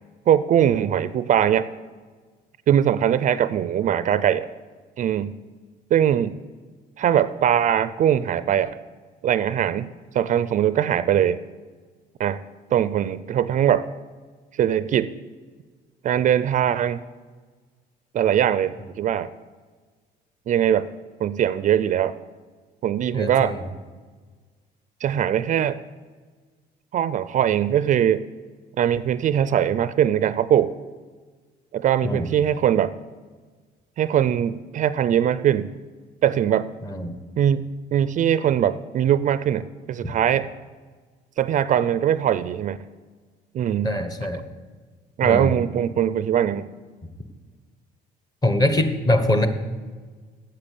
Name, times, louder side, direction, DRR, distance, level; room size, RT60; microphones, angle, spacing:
voice 1, 0.3-1.7 2.7-4.5 5.0-5.4 5.9-6.4 7.0-8.7 9.2-9.9 10.1-11.4 12.2-12.4 12.7-13.9 14.6-15.1 16.0-17.0 18.1-19.3 20.5-20.9 21.2-22.2 22.8-23.6 25.0-25.8 26.9-28.2 28.8-30.7 31.7-32.9 34.0-35.7 36.2-36.7 37.4-40.5 41.4-42.8 43.5-44.0 45.2-46.7, right 10 dB, 50° right, 15 dB, 0.4 m, -21 dB
voice 2, 23.1-23.7 32.0-32.3 36.8-37.2 43.8-44.4 45.2-45.6 48.4-49.5, left 1 dB, 20° left, 9 dB, 1.2 m, -23 dB
8.7 x 7.7 x 8.4 m, 1.5 s
cardioid pair, 110°, 17 cm